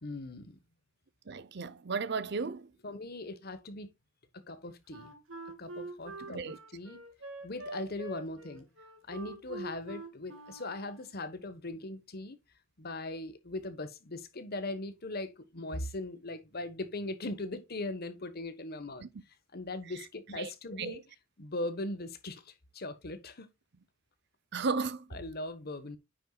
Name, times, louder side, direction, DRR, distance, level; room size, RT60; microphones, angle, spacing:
voice 1, 0.0-0.6 2.8-3.9 4.3-5.1 5.6-7.0 7.4-8.7 9.1-12.4 12.8-19.1 19.5-21.0 21.4-23.5 25.1-26.0, left 2 dB, 50° left, 1.2 m, -39 dB
voice 2, 1.3-2.7 6.2-6.6 19.0-19.1 19.9-20.0 20.3-20.5 20.8-21.0 24.5-25.1, right 4 dB, 55° right, 0.7 m, -35 dB
Wind instrument woodwind instrument, 4.9-11.2, right 2 dB, 85° right, 2.7 m, -45 dB
9.3 x 6.8 x 2.3 m
head